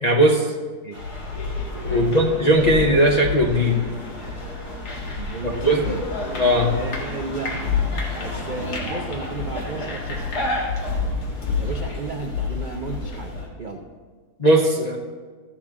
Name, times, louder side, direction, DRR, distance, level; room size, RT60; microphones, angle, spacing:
voice 1, 0.0-0.5 1.8-3.9 5.6-5.8 6.4-6.8 14.4-15.0, equal, 35° left, 0 dB, 0.7 m, -18 dB
sound 1, 0.9-13.5, left 3 dB, 75° left, 2.2 m, -29 dB
voice 2, 1.9-2.3 5.2-6.0 6.7-7.8 8.2-10.4 11.6-13.8, right 4 dB, 50° right, 2 dB, 0.5 m, -33 dB
14.5 x 7.4 x 3.6 m, 1.5 s
omnidirectional pair, 1.7 m